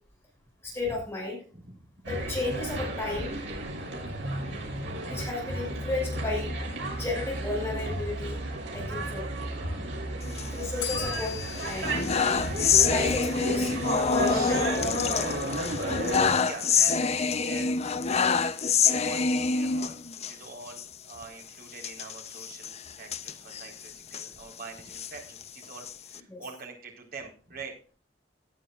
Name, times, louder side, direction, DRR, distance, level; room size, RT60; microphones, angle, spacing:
voice 1, 0.6-1.4 2.1-3.4 5.0-6.7 7.0-8.4 8.7-9.3 10.5-11.4 11.6-12.0 12.7-13.7 14.0-14.9 26.3-26.4, left 2 dB, 15° left, -2 dB, 6.4 m, -33 dB
sound 1, 2.0-16.3, right 1 dB, 80° right, 6.6 m, -33 dB
sound 2, 10.2-11.2 11.6-20.3 20.7-20.9 21.1-21.2 21.8-24.3 24.8-26.2, left 5 dB, 35° left, 0.7 m, -26 dB
Bell, 10.8-13.6, left 12 dB, 85° left, 5.4 m, -40 dB
voice 2, 13.3-13.7 14.3-14.6 16.3-27.7, right 4 dB, 55° right, 1 dB, 4.4 m, -45 dB
18.0 x 10.0 x 2.5 m, 0.38 s
head